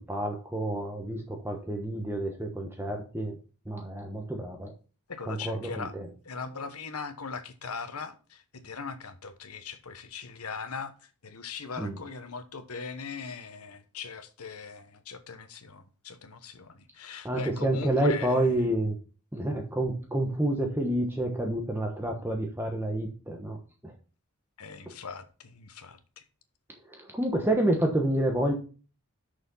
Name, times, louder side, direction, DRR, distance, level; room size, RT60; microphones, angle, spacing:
voice 1, 0.0-3.4 3.6-4.7 5.3-6.1 11.8-11.9 17.2-19.0 19.3-23.6 23.8-23.9 24.9-25.0 26.9-28.5, right 1 dB, 10° right, 1.1 m, -29 dB
voice 2, 5.1-5.9 6.2-18.4 24.6-26.2, left 5 dB, 80° left, 1.1 m, -40 dB
6.5 x 6.0 x 5.5 m
head